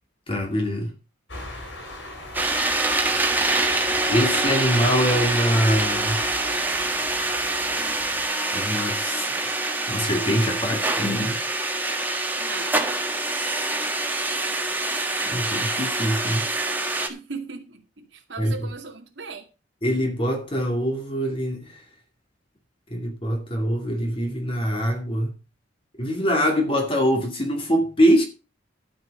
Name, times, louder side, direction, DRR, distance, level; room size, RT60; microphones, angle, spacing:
voice 1, 0.3-0.9 4.1-6.2 8.5-9.6 9.9-11.4 15.2-16.5 18.4-18.5 19.8-21.8 22.9-25.3 26.0-28.2, equal, 30° left, 2.3 m, -24 dB
sound 1, 1.3-8.3, left 1 dB, 80° left, 5.5 m, -41 dB
sound 2, 2.3-17.1, right 2 dB, 10° right, 1.6 m, -25 dB
voice 2, 12.4-12.8 16.9-19.5, right 4 dB, 75° right, 2.2 m, -38 dB
12.5 x 5.9 x 6.5 m
head